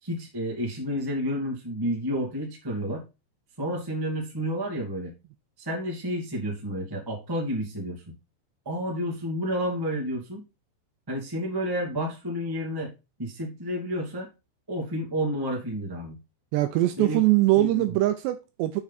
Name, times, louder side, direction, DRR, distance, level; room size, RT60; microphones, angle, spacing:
voice 1, 0.0-3.0 3.6-5.1 5.6-8.0 8.6-10.4 11.1-12.9 13.2-14.3 14.7-16.2 16.9-17.2 17.5-18.0, equal, 15° right, 0.7 m, -30 dB
voice 2, 16.5-18.8, right 16 dB, 80° right, 2.6 m, -22 dB
7.2 x 6.4 x 4.2 m
omnidirectional pair, 5.4 m